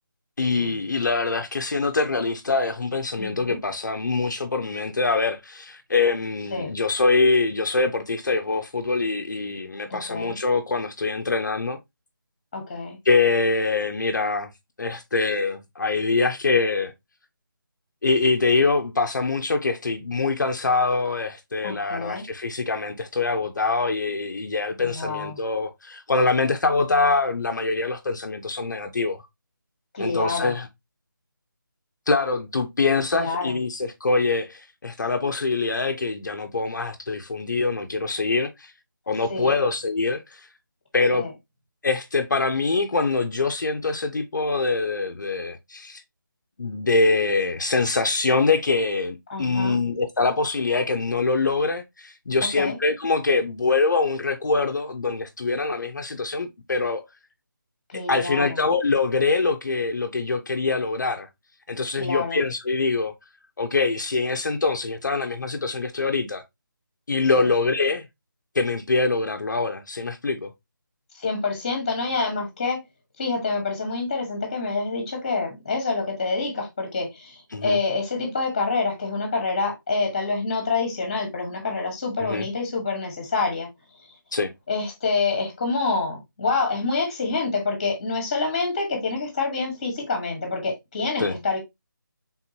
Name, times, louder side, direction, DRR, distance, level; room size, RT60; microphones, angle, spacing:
voice 1, 0.4-11.8 13.0-14.5 14.8-16.9 18.0-29.2 30.0-30.7 32.1-38.7 39.1-40.5 40.9-41.3 41.8-46.0 46.6-57.0 57.9-61.3 61.7-63.1 63.6-66.4 67.1-68.1 68.5-70.5 77.5-77.8 82.2-82.5 84.3-84.5 91.2-91.3, left 3 dB, 55° left, 0.6 m, -24 dB
voice 2, 3.2-3.6 6.5-6.7 9.9-10.3 12.5-13.0 21.6-22.2 24.8-25.3 29.9-30.5 33.1-33.5 39.3-39.5 41.1-41.3 49.3-49.8 52.6-52.7 57.9-58.6 62.0-62.4 67.3-67.5 71.2-72.8 73.2-83.7 84.7-91.6, left 4 dB, 20° left, 1.2 m, -27 dB
4.4 x 3.6 x 2.7 m
figure-of-eight pair, 175°, 11 cm